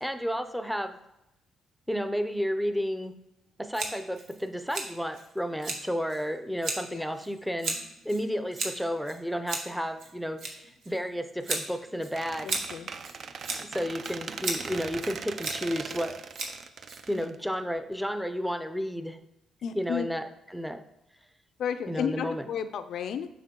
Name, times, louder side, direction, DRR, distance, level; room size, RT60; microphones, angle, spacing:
voice 1, 0.0-1.0 1.9-3.1 3.6-12.5 13.6-16.2 17.1-19.2 19.7-20.8 21.9-22.5, equal, ahead, 9 dB, 0.5 m, -32 dB
Scissors, 3.7-17.4, right 3 dB, 75° right, 1.1 m, -37 dB
Squeak, 12.1-17.9, right 5 dB, 50° right, 0.4 m, -40 dB
voice 2, 12.4-12.9 17.2-17.3 19.6-20.1 21.6-23.3, left 8 dB, 70° left, 9 dB, 0.3 m, -33 dB
6.7 x 4.3 x 3.7 m, 0.88 s
cardioid pair, 90°, 0 cm